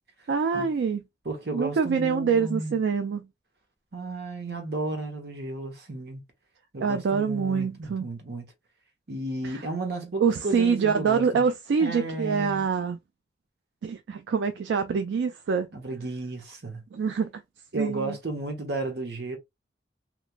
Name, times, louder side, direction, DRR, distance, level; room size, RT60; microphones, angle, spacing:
voice 1, 0.3-1.0 1.5-3.3 6.8-8.1 9.4-9.6 10.2-13.0 13.8-15.7 16.9-17.3 17.8-18.2, right 6 dB, 80° right, 0.3 m, -25 dB
voice 2, 1.2-2.8 3.9-6.2 6.7-8.5 9.1-11.4 11.8-12.6 15.7-16.8 17.7-19.4, right 2 dB, 65° right, 0.9 m, -33 dB
3.0 x 2.5 x 2.2 m
head